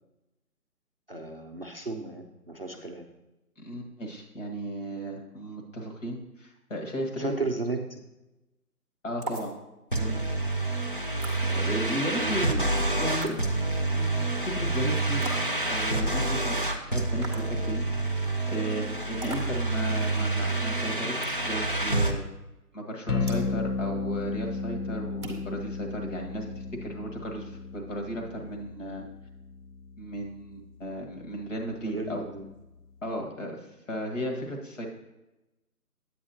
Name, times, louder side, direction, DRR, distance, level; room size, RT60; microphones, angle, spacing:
voice 1, 1.1-3.0 7.2-8.0 12.1-12.8 31.8-32.5, right 3 dB, 40° right, 4 dB, 0.5 m, -34 dB
voice 2, 3.6-7.4 9.0-9.5 9.9-10.4 11.5-12.5 13.0-13.4 13.9-15.2 15.7-22.2 22.7-29.1 30.0-32.2 33.0-34.9, equal, 50° left, 2 dB, 1.8 m, -35 dB
sound 1, 9.2-9.5 11.2-11.4 13.2-13.4 15.2-15.5 17.2-17.5 19.2-19.5 21.2-21.4 23.3-23.5 25.2-25.5, right 2 dB, 20° right, 0.8 m, -37 dB
sound 2, 9.9-22.1, right 2 dB, 35° left, 0.5 m, -28 dB
sound 3, 23.1-33.1, left 4 dB, 70° left, 1.0 m, -35 dB
9.6 x 8.7 x 2.8 m, 0.99 s
figure-of-eight pair, 165°, 47 cm